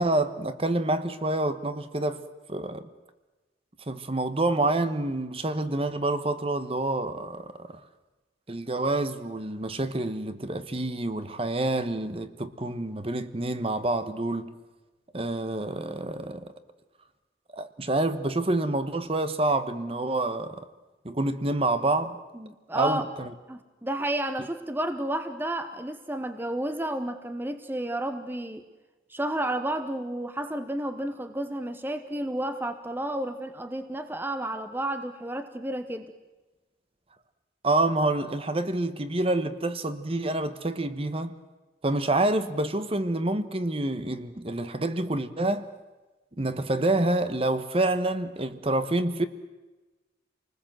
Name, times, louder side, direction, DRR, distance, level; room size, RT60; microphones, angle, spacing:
voice 1, 0.0-2.2 2.5-2.9 3.9-7.8 8.5-14.5 15.1-16.4 17.5-20.6 21.0-22.2 22.7-23.3 37.6-41.4 41.8-45.7 46.4-49.3, right 2 dB, 30° right, 1.1 m, -27 dB
voice 2, 22.3-23.1 23.5-28.7 29.1-36.1, right 1 dB, 10° right, 0.9 m, -31 dB
28.0 x 20.0 x 7.7 m
head